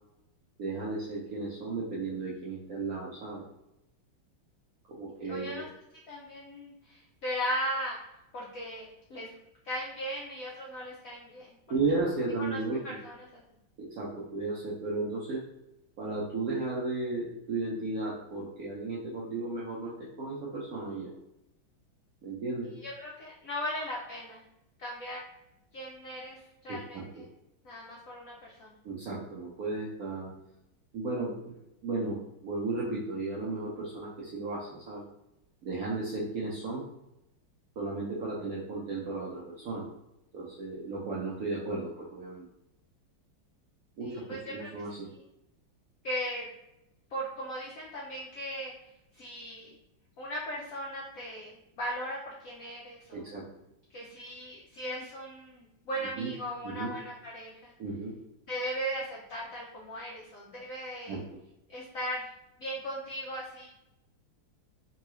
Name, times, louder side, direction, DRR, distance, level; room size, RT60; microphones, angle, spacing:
voice 1, 0.6-3.4 4.9-5.7 11.7-13.0 13.8-15.4 16.0-21.1 22.2-22.7 26.7-27.0 28.8-30.3 30.9-31.5 31.8-35.0 35.6-36.9 37.8-39.9 40.3-42.5 44.0-45.1 53.1-53.5 54.9-55.0 56.0-57.0 57.8-58.1 61.1-61.2, right 3 dB, 70° right, -5 dB, 0.8 m, -34 dB
voice 2, 5.1-5.7 6.1-8.0 8.3-9.3 9.6-11.6 12.4-13.4 22.8-24.4 24.8-25.2 25.7-27.3 27.6-28.8 44.0-44.7 45.1-45.2 46.0-46.5 47.1-48.7 49.1-49.7 50.2-53.3 53.9-57.7 58.5-61.2 61.7-62.3 62.6-63.7, equal, 75° left, -3 dB, 0.7 m, -38 dB
3.8 x 2.3 x 3.0 m, 0.88 s
omnidirectional pair, 2.2 m